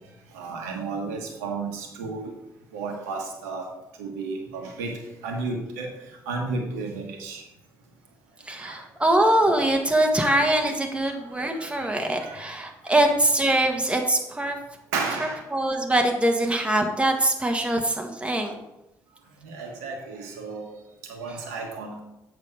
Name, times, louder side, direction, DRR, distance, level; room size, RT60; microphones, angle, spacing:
voice 1, 0.3-2.3 2.7-3.7 4.0-5.0 5.2-5.9 6.3-7.4 8.6-8.7 11.6-11.7 12.2-12.4 14.9-15.4 19.4-20.6 21.1-22.0, right 4 dB, 80° right, 2 dB, 1.3 m, -32 dB
voice 2, 8.5-14.6 15.5-18.6, right 1 dB, 15° right, 2 dB, 1.7 m, -23 dB
7.5 x 5.9 x 5.0 m, 0.92 s
hypercardioid pair, 45°, 9 cm